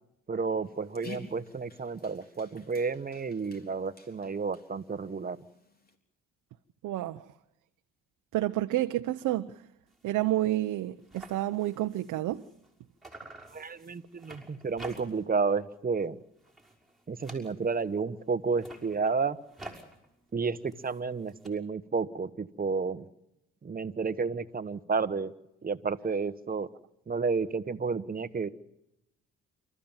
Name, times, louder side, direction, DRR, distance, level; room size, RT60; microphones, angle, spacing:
voice 1, 0.3-5.4 13.5-16.2 17.1-19.4 20.3-23.0 23.6-25.3 25.6-26.7 27.1-28.5, right 4 dB, 30° right, 1.3 m, -31 dB
Dog, 0.6-6.0, left 3 dB, 30° left, 3.7 m, -51 dB
voice 2, 6.8-7.3 8.3-9.5 10.0-12.4, right 15 dB, 85° right, 0.9 m, -29 dB
sound 1, 9.9-10.1 10.5-10.6 10.8-12.7 13.0-15.4 15.7-16.1 16.4-17.9 18.4-21.5, right 2 dB, ahead, 5.7 m, -49 dB
29.0 x 14.0 x 7.4 m
cardioid pair, 90°, 30 cm